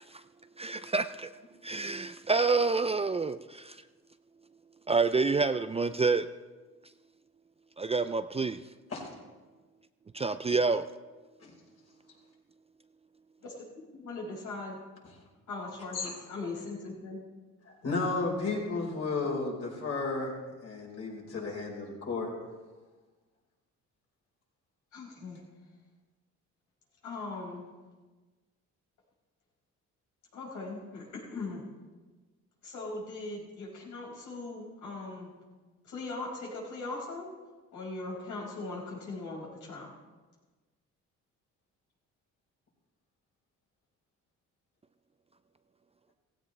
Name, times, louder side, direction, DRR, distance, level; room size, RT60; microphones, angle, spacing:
voice 1, 0.6-1.3 1.6-3.8 4.9-6.3 7.8-8.6 10.1-10.9, right 4 dB, 20° right, 11 dB, 0.4 m, -28 dB
voice 2, 13.9-14.8 15.5-17.2 24.9-25.4 27.0-27.7 30.3-31.6 32.6-35.3 35.8-37.3 37.7-39.9, left 3 dB, 80° left, -4 dB, 5.7 m, -39 dB
voice 3, 17.6-20.3 20.6-22.3, left 3 dB, 55° left, -1 dB, 4.9 m, -33 dB
16.5 x 16.0 x 3.3 m, 1.3 s
cardioid pair, 90°, 30 cm